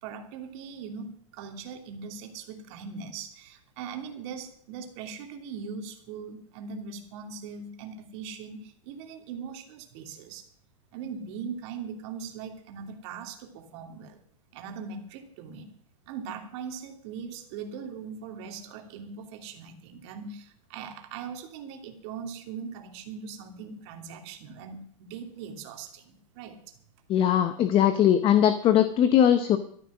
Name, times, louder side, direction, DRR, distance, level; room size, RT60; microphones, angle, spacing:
voice 1, 0.0-10.5 10.9-14.2 14.5-15.7 16.1-26.7, right 6 dB, 50° right, 4 dB, 2.8 m, -40 dB
voice 2, 27.1-29.6, left 10 dB, 30° left, 11 dB, 0.9 m, -20 dB
14.0 x 11.0 x 6.1 m, 0.63 s
hypercardioid pair, 130°, 18 cm